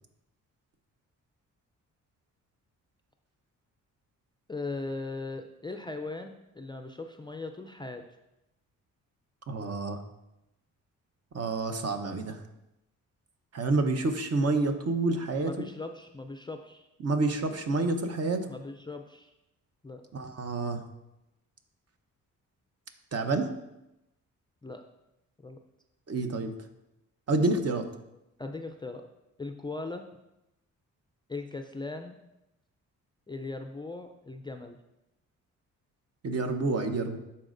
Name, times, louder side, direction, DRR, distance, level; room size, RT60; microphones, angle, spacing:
voice 1, 4.5-8.0 15.5-16.9 18.5-19.3 19.8-20.0 24.6-24.8 25.4-25.6 28.4-29.1 29.4-30.0 31.3-32.2 33.3-34.8, left 3 dB, 15° left, 5 dB, 0.4 m, -39 dB
voice 2, 9.5-10.0 11.3-12.4 13.5-15.6 17.0-18.5 20.1-20.8 23.1-23.5 26.1-26.5 27.3-27.9 36.2-37.2, right 3 dB, 50° right, 6 dB, 0.8 m, -28 dB
11.5 x 4.2 x 2.6 m, 0.90 s
cardioid pair, 75°, 33 cm